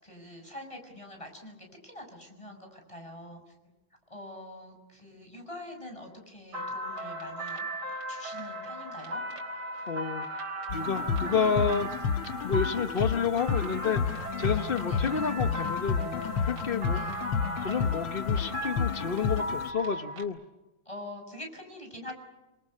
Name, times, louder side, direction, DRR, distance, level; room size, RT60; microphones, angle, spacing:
voice 1, 0.0-3.5 4.1-7.7 8.1-9.2 14.9-15.0 16.9-17.1 20.8-22.1, left 1 dB, 15° left, 4 dB, 6.5 m, -45 dB
sound 1, 6.5-20.2, right 1 dB, 70° right, 4.8 m, -37 dB
voice 2, 9.9-10.3 10.7-11.9 12.4-17.0 17.6-20.4, left 6 dB, 50° left, 8 dB, 0.6 m, -30 dB
sound 2, 10.7-19.7, left 6 dB, 65° left, 1.7 m, -31 dB
27.5 x 25.5 x 6.6 m, 1.0 s
omnidirectional pair, 2.4 m